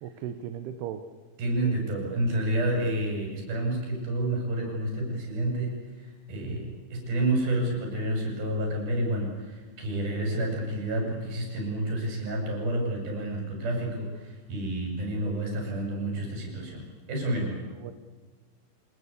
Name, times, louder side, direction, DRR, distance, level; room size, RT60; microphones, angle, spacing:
voice 1, 0.0-1.0 1.7-1.8 15.1-15.4 17.8-17.9, right 9 dB, 85° right, 9 dB, 3.1 m, -37 dB
voice 2, 1.4-5.7 6.0-17.6, right 1 dB, 65° right, 1 dB, 8.1 m, -29 dB
26.0 x 20.0 x 8.4 m, 1.3 s
omnidirectional pair, 4.6 m